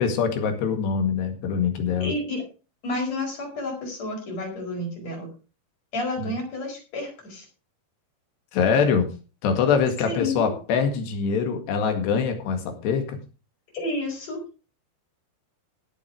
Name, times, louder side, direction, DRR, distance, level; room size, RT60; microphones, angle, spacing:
voice 1, 0.0-2.1 6.2-6.3 8.5-9.1 9.4-13.2, left 6 dB, 75° left, 6 dB, 4.1 m, -24 dB
voice 2, 2.0-2.4 2.8-5.3 5.9-7.5 10.0-10.5 13.7-14.4, left 2 dB, 40° left, 1 dB, 5.9 m, -30 dB
16.5 x 7.6 x 4.8 m, 0.33 s
omnidirectional pair, 4.9 m